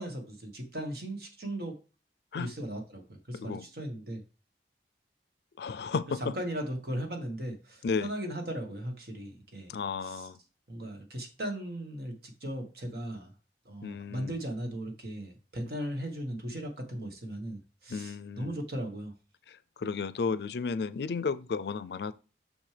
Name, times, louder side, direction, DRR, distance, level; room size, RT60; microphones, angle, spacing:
voice 1, 0.0-1.7 2.4-4.2 6.2-9.7 10.0-10.3 10.7-13.3 13.6-19.1, right 1 dB, 65° right, 1.5 m, -37 dB
voice 2, 3.3-3.7 5.6-6.3 7.8-8.1 9.7-10.4 13.8-14.4 17.9-18.6 19.5-22.1, left 5 dB, 70° left, 0.4 m, -33 dB
6.3 x 6.2 x 3.3 m
head